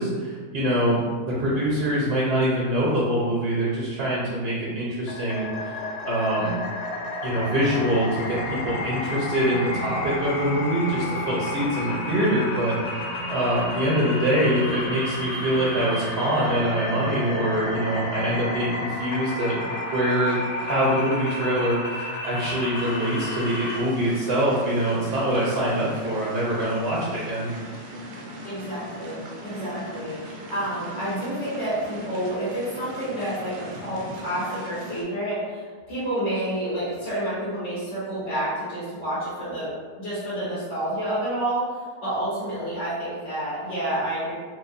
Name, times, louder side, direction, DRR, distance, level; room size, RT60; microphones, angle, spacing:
voice 1, 0.0-5.8 6.1-6.6 7.2-13.0 13.3-27.5, right 1 dB, 55° right, -6 dB, 0.8 m, -24 dB
sound 1, 5.1-23.8, left 2 dB, 85° left, 1.1 m, -32 dB
sound 2, 7.2-18.3, right 4 dB, 20° left, 1.3 m, -39 dB
sound 3, 22.7-35.0, equal, 85° right, 1.1 m, -39 dB
voice 2, 28.4-30.2 30.5-39.7 40.0-41.7 42.0-44.4, right 1 dB, 55° left, -13 dB, 1.8 m, -29 dB
4.7 x 2.1 x 2.5 m, 1.5 s
omnidirectional pair, 1.5 m